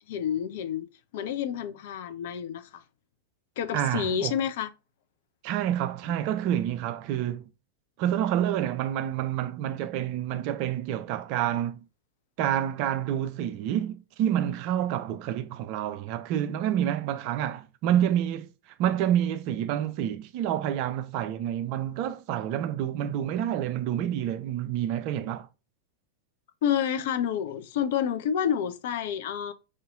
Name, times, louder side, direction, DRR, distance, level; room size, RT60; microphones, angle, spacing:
voice 1, 0.1-2.8 3.6-4.7 26.6-29.5, left 9 dB, 55° left, 0.4 m, -29 dB
voice 2, 3.7-4.3 5.4-7.5 8.0-11.8 12.4-18.5 18.8-25.5, right 11 dB, 45° right, 0.4 m, -28 dB
4.8 x 2.7 x 2.4 m
figure-of-eight pair, 90°, 0 cm